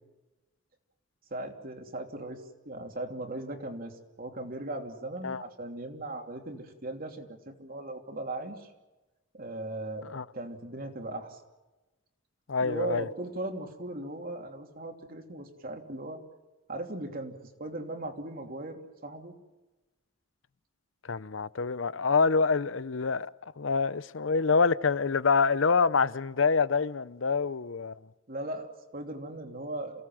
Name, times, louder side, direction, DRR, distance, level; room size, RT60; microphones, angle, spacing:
voice 1, 1.3-8.7 9.3-10.1 10.3-11.4 12.6-16.2 16.7-19.4 28.3-30.0, right 2 dB, 45° right, 3.0 m, -38 dB
voice 2, 12.5-13.1 21.0-27.9, left 4 dB, 75° left, 0.7 m, -26 dB
29.0 x 17.5 x 7.7 m
head